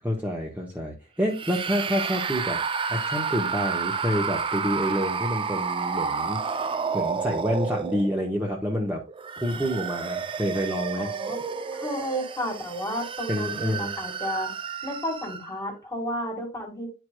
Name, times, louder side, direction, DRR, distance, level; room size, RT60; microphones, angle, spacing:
voice 1, 0.0-2.6 2.9-6.7 6.9-9.0 9.4-11.1 13.3-13.9, equal, 10° right, -2 dB, 1.0 m, -28 dB
sound 1, 1.3-8.4 9.1-15.6, right 5 dB, 25° right, 0.4 m, -30 dB
voice 2, 11.0-11.4 11.8-14.5 14.8-16.9, equal, 15° left, 2 dB, 1.9 m, -32 dB
10.5 x 4.7 x 2.2 m, 0.31 s
head